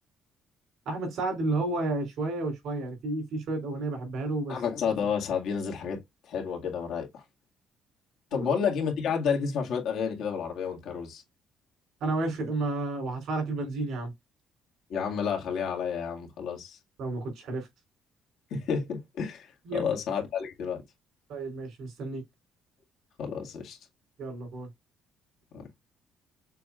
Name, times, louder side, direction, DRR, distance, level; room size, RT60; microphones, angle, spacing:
voice 1, 0.9-4.5 8.3-8.6 12.0-14.1 17.0-17.7 19.7-19.9 21.3-22.2 24.2-24.7, right 2 dB, 70° right, 3.7 m, -31 dB
voice 2, 4.5-6.0 6.3-7.2 8.3-11.2 14.9-16.8 18.5-20.8 23.2-23.8 25.5-25.7, left 6 dB, 70° left, 1.8 m, -30 dB
6.6 x 3.1 x 2.4 m
cardioid pair, 130°, 0 cm